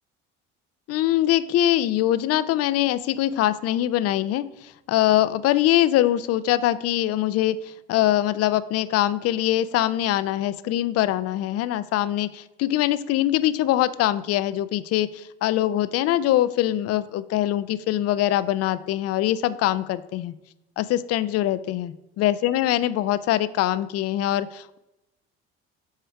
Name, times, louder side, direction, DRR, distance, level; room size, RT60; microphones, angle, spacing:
voice 1, 0.9-20.3 20.8-24.8, left 13 dB, 50° left, 15 dB, 0.5 m, -23 dB
8.0 x 3.3 x 4.7 m, 0.93 s
hypercardioid pair, 75°, 30 cm